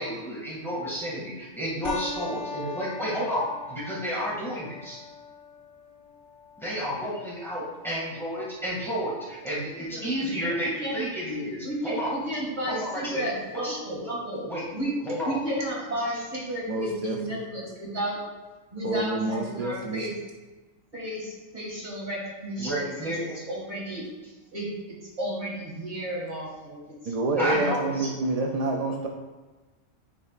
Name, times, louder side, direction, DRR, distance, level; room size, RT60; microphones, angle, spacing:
voice 1, 0.0-5.0 6.6-12.1 12.7-13.2 13.5-13.7 14.5-14.6 15.0-15.4 22.6-23.3 27.4-28.1, equal, ahead, -7 dB, 2.0 m, -31 dB
sound 1, 1.8-10.8, left 4 dB, 65° left, 1.1 m, -43 dB
voice 2, 9.8-11.1 11.6-14.4 14.7-14.9 15.2-18.2 18.7-20.1 20.9-22.8 23.2-24.0 24.5-24.7 25.2-26.8 27.0-27.6, right 1 dB, 35° right, -6 dB, 2.2 m, -33 dB
voice 3, 16.7-17.4 18.8-20.0 27.1-29.1, right 2 dB, 60° right, 1 dB, 0.4 m, -28 dB
9.7 x 4.1 x 2.4 m, 1.2 s
omnidirectional pair, 1.3 m